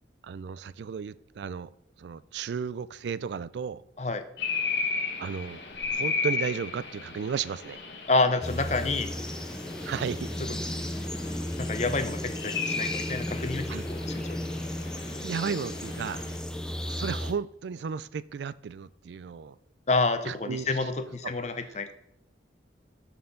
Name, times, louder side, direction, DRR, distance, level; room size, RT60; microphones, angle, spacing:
voice 1, 0.2-1.7 2.0-3.8 5.2-5.6 5.9-7.8 9.8-10.3 13.7-13.8 15.1-16.3 16.8-19.6 20.3-20.9 21.2-21.3 21.6-21.9, right 6 dB, 75° right, 18 dB, 0.3 m, -34 dB
sound 1, 4.4-16.4, left 4 dB, 70° left, 1.3 m, -35 dB
voice 2, 8.1-9.1 11.6-14.4 19.9-21.9, left 3 dB, 40° left, 9 dB, 0.7 m, -28 dB
sound 2, 8.4-17.3, left 1 dB, 5° left, 0.4 m, -34 dB
12.5 x 4.4 x 3.8 m, 0.75 s
head